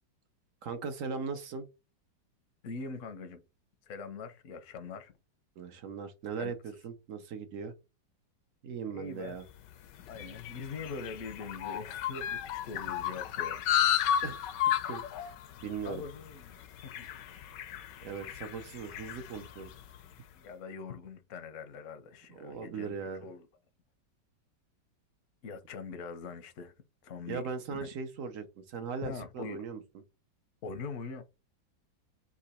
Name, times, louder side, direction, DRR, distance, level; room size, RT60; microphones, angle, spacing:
voice 1, 0.6-1.7 5.6-7.7 8.6-9.4 14.2-14.4 14.9-15.3 15.6-16.0 18.0-19.7 22.3-23.2 27.3-29.8, right 5 dB, 65° right, 0.8 m, -39 dB
voice 2, 2.6-3.4 3.9-5.1 6.4-6.5 8.9-9.4 10.1-13.6 15.8-17.1 20.4-23.5 25.4-26.7 27.0-27.4 27.7-27.9 29.0-29.6 30.6-31.2, left 4 dB, 60° left, 0.8 m, -42 dB
sound 1, 9.5-20.1, left 10 dB, 75° left, 1.2 m, -34 dB
3.9 x 2.9 x 4.2 m
omnidirectional pair, 2.1 m